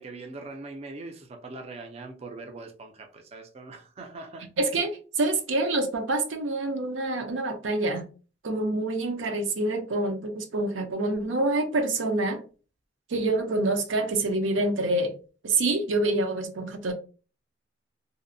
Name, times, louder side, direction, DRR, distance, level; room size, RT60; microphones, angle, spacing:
voice 1, 0.0-4.5, right 3 dB, 35° right, 0.3 m, -41 dB
voice 2, 4.6-8.0 8.4-12.4 13.1-15.1 15.4-16.9, right 2 dB, 90° right, 0.5 m, -26 dB
2.6 x 2.0 x 2.5 m
head